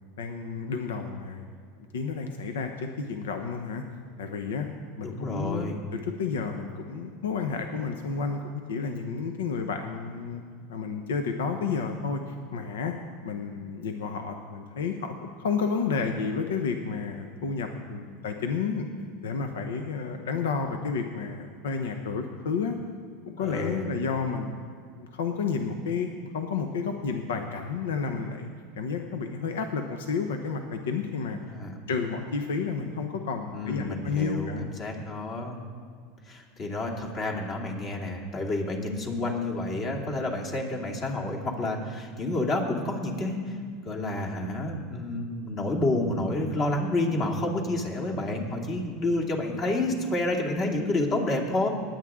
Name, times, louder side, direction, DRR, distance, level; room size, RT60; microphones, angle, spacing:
voice 1, 0.2-1.4 1.9-3.8 4.2-4.7 5.0-8.4 8.7-10.4 10.7-12.9 13.2-18.9 19.2-22.8 23.3-24.5 25.0-28.5 28.8-31.4 31.9-34.7, left 5 dB, 85° left, 5 dB, 0.9 m, -31 dB
voice 2, 5.0-5.8 23.4-23.9 31.5-31.8 33.5-35.6 36.3-43.6 43.8-51.7, left 2 dB, 40° left, 0 dB, 2.5 m, -29 dB
19.5 x 9.0 x 3.7 m, 2.1 s
supercardioid pair, 110°, 0 cm